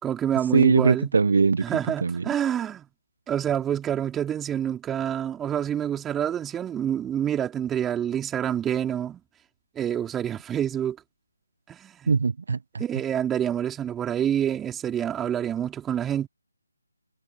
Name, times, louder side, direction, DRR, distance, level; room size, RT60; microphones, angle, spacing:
voice 1, 0.0-1.1 1.6-2.9 3.3-9.2 9.8-11.0 11.7-12.1 12.8-16.3, right 9 dB, 10° right, 4.0 m, -27 dB
voice 2, 0.5-1.6 2.0-2.3 12.1-12.8, right 4 dB, 50° right, 1.2 m, -21 dB
figure-of-eight pair, 150°, 0 cm